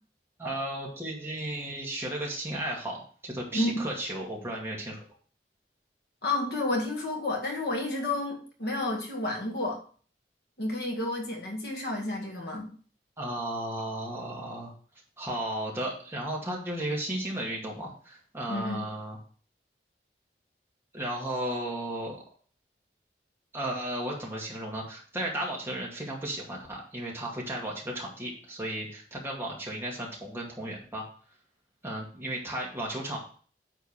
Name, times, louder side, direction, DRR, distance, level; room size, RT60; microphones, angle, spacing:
voice 1, 0.4-5.0 13.2-14.7 15.2-19.2 20.9-22.2 23.5-31.1 31.8-33.2, right 1 dB, 15° right, -3 dB, 2.2 m, -34 dB
voice 2, 6.2-9.8 10.6-12.7 18.5-18.8, left 2 dB, 70° left, 1 dB, 2.0 m, -30 dB
9.2 x 3.7 x 6.8 m, 0.43 s
head